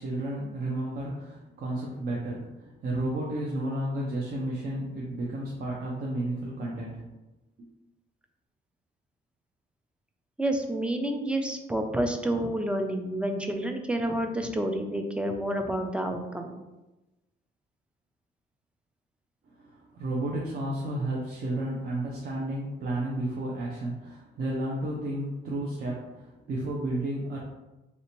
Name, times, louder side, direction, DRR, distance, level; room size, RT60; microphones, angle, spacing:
voice 1, 0.0-7.0 7.6-7.7 19.5-27.4, right 1 dB, 60° right, -4 dB, 0.6 m, -32 dB
voice 2, 10.4-16.5, right 1 dB, 5° right, 4 dB, 0.3 m, -29 dB
3.2 x 2.7 x 2.9 m, 1.0 s
cardioid pair, 125°, 18 cm